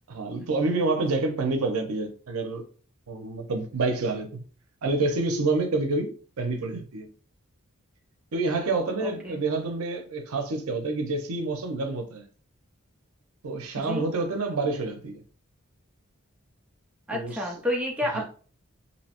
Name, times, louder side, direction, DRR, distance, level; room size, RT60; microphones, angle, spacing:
voice 1, 0.1-2.6 3.1-4.3 4.8-7.1 8.3-12.2 13.4-15.2 17.1-17.4 18.1-18.2, right 3 dB, 85° right, 0.6 m, -28 dB
voice 2, 9.0-9.4 13.8-14.1 17.1-18.3, left 1 dB, 5° right, 0.5 m, -30 dB
2.7 x 2.0 x 2.8 m
head